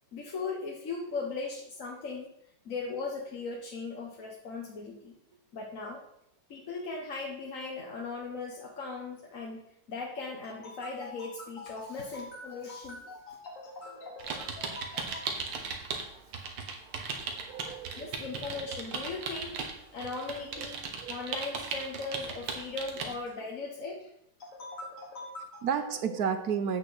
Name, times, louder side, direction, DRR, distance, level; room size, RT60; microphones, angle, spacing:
voice 1, 0.1-2.3 2.6-5.1 5.5-6.0 6.5-9.6 9.9-15.4 18.0-19.6 19.9-20.8 21.1-24.1 24.4-25.7, left 3 dB, 45° left, 0 dB, 1.4 m, -38 dB
sound 1, 14.2-16.1 16.3-23.1, right 5 dB, 80° right, 2.3 m, -37 dB
voice 2, 16.8-18.2 20.6-20.7 21.0-21.2 25.6-26.8, right 7 dB, 60° right, 10 dB, 1.0 m, -33 dB
8.4 x 6.6 x 7.8 m, 0.76 s
omnidirectional pair, 2.4 m